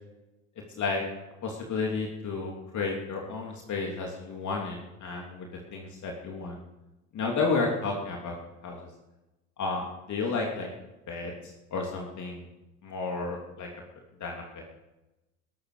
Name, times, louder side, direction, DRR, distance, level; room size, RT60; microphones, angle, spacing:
voice 1, 0.7-1.0 1.4-6.6 7.1-8.4 8.6-8.8 9.6-10.7 11.1-12.5 12.8-13.7 14.2-14.6, left 4 dB, 45° left, 0 dB, 3.2 m, -32 dB
21.5 x 13.5 x 5.1 m, 1.0 s
hypercardioid pair, 70°, 41 cm